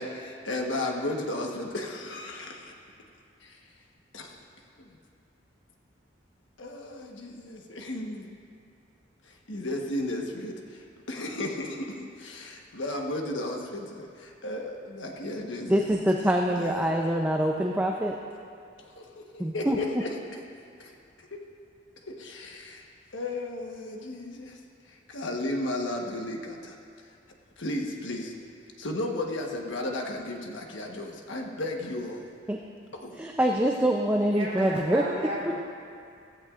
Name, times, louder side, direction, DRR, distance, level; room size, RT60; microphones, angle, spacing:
voice 1, 0.0-2.7 3.4-3.6 4.1-4.4 4.8-5.0 6.6-8.3 9.2-15.9 16.6-16.9 18.8-20.4 20.8-21.4 22.0-22.8 23.1-24.6 24.9-26.8 27.6-28.4 28.8-32.2 32.9-33.1, left 1 dB, 80° left, 1 dB, 1.2 m, -34 dB
voice 2, 15.7-18.2 19.4-19.8 32.5-32.6 33.2-35.0 35.5-35.6, right 1 dB, 10° right, 0 dB, 0.5 m, -25 dB
voice 3, 34.3-35.6, right 1 dB, 30° right, -7 dB, 3.5 m, -33 dB
15.5 x 15.5 x 2.5 m, 2.4 s
head